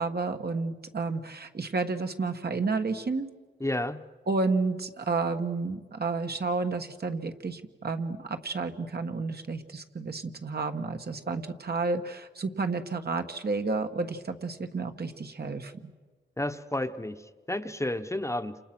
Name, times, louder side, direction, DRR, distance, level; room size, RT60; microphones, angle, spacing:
voice 1, 0.0-3.3 4.3-15.9, right 3 dB, 60° right, 6 dB, 1.6 m, -31 dB
voice 2, 3.6-4.0 16.4-18.6, left 1 dB, 15° left, 8 dB, 1.0 m, -31 dB
29.5 x 28.0 x 6.1 m, 1.4 s
wide cardioid pair, 100°, 19 cm